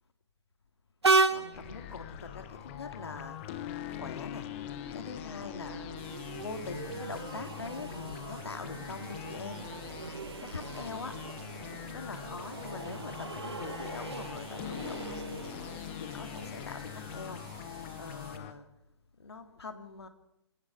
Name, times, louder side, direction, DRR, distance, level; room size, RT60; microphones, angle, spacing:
Train, 1.0-18.3, right 3 dB, 65° right, 1.4 m, -37 dB
voice 1, 1.3-3.6 3.9-4.5 4.9-5.9 6.4-9.7 10.4-11.2 11.9-18.7 19.2-20.1, left 4 dB, 65° left, 8 dB, 2.2 m, -43 dB
sound 1, 1.5-18.5, left 12 dB, 25° left, 1.2 m, -43 dB
sound 2, 6.0-18.4, right 3 dB, 50° right, 5.6 m, -52 dB
27.0 x 17.0 x 6.7 m, 0.85 s
figure-of-eight pair, 135°, 15 cm